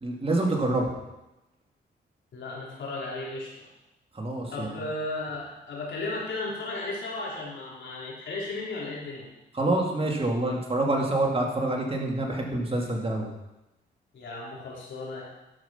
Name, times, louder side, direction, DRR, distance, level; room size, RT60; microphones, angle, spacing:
voice 1, 0.0-0.9 4.1-4.7 9.6-13.3, right 2 dB, 30° right, -1 dB, 2.9 m, -26 dB
voice 2, 2.3-3.7 4.5-9.3 14.1-15.2, left 2 dB, 65° left, -5 dB, 4.3 m, -35 dB
11.5 x 6.2 x 6.0 m, 0.99 s
cardioid pair, 65°, 20 cm